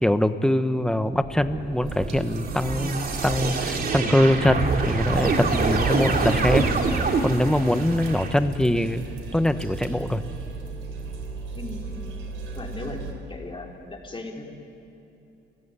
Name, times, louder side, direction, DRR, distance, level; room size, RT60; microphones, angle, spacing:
voice 1, 0.0-6.7 7.2-9.1 9.3-10.2, left 1 dB, 5° left, 10 dB, 1.2 m, -23 dB
sound 1, 1.2-8.3, right 4 dB, 50° right, 3.0 m, -26 dB
sound 2, 1.8-13.1, right 3 dB, 85° right, 3.5 m, -38 dB
voice 2, 5.4-5.8 11.5-12.0 12.5-13.0 13.3-14.5, left 2 dB, 25° left, 0 dB, 4.3 m, -37 dB
29.5 x 16.0 x 9.9 m, 2.9 s
cardioid pair, 90°, 20 cm